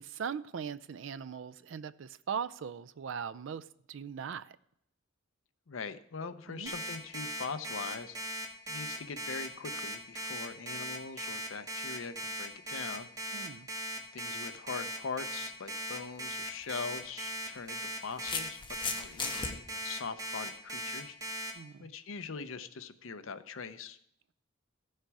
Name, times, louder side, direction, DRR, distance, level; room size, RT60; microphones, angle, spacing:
voice 1, 0.0-4.5 6.5-6.7 13.3-13.7 21.5-21.8, right 7 dB, 70° right, 0.4 m, -40 dB
voice 2, 5.7-13.1 14.1-21.5 21.8-24.0, left 5 dB, 80° left, 0.7 m, -42 dB
Alarm, 6.7-21.5, equal, 20° right, 1.7 m, -38 dB
sound 1, 16.3-16.5 17.6-19.5, left 5 dB, 25° left, 1.0 m, -37 dB
14.5 x 6.6 x 4.7 m
head